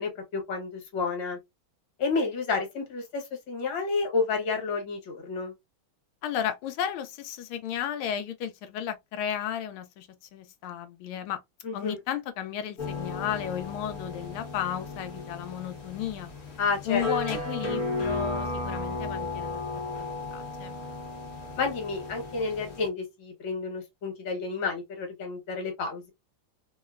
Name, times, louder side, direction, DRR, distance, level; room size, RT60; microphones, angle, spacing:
voice 1, 0.0-1.4 2.0-5.5 11.6-12.0 16.6-17.0 21.6-26.1, left 4 dB, 65° left, 1.8 m, -30 dB
voice 2, 6.2-11.4 11.7-16.3 16.8-19.8 20.3-20.8, left 9 dB, 80° left, 1.4 m, -34 dB
sound 1, 12.8-22.9, left 3 dB, 45° left, 0.9 m, -34 dB
3.7 x 2.0 x 2.3 m
omnidirectional pair, 2.3 m